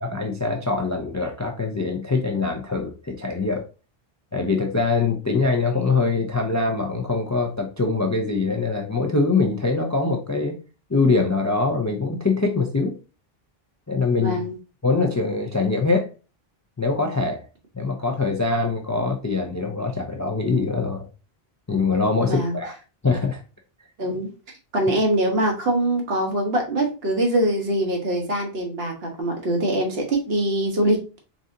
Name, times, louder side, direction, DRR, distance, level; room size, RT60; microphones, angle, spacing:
voice 1, 0.0-3.6 4.3-10.6 10.9-12.9 13.9-14.4 14.8-16.1 16.8-17.5 17.7-21.1 21.7-22.7 23.0-23.4, left 3 dB, 25° left, 3 dB, 0.4 m, -23 dB
voice 2, 14.2-14.5 22.3-22.5 24.0-24.3 24.7-31.0, right 1 dB, 75° right, 2 dB, 1.3 m, -23 dB
4.0 x 3.7 x 2.6 m, 0.33 s
omnidirectional pair, 1.0 m